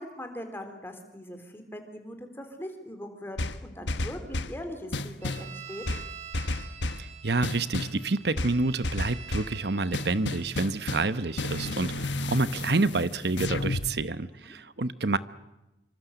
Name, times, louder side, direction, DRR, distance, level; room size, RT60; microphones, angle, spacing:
voice 1, 0.0-5.8 14.3-14.6, equal, 15° left, 5 dB, 3.7 m, -41 dB
sound 1, 3.4-4.6 4.9-5.5 5.9-7.1 7.4-8.0 8.4-9.6 9.9-13.9, left 2 dB, 80° left, 1.4 m, -32 dB
sound 2, 5.2-11.8, right 8 dB, 40° right, 2.2 m, -47 dB
voice 2, 7.0-15.2, right 3 dB, 60° right, 14 dB, 1.0 m, -28 dB
26.5 x 25.5 x 8.1 m, 0.97 s
head